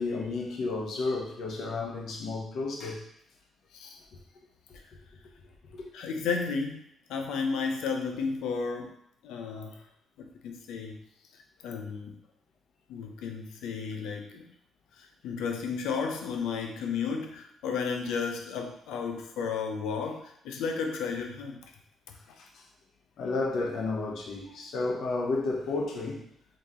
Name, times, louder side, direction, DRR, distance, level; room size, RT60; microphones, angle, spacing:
voice 1, 0.0-3.0 5.7-5.9 22.4-22.6 23.2-26.2, left 3 dB, 65° left, 0 dB, 0.9 m, -32 dB
voice 2, 5.9-6.8 7.1-8.9 9.2-9.8 10.4-11.0 11.6-12.1 12.9-14.4 15.0-21.6, left 5 dB, 90° left, 4 dB, 0.6 m, -33 dB
3.9 x 2.9 x 3.6 m, 0.70 s
cardioid pair, 90°, 0 cm